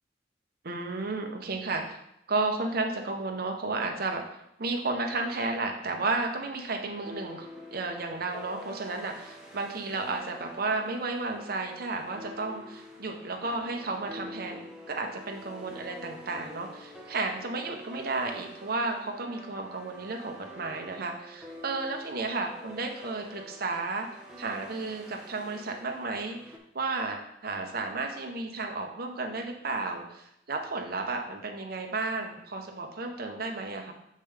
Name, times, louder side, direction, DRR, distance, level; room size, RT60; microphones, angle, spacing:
voice 1, 0.6-2.0 2.3-4.2 4.6-14.6 14.9-24.1 24.4-33.9, right 3 dB, 60° right, 3 dB, 0.9 m, -33 dB
sound 1, 6.6-26.6, left 1 dB, 5° right, 1.0 m, -47 dB
6.5 x 5.3 x 3.4 m, 0.80 s
head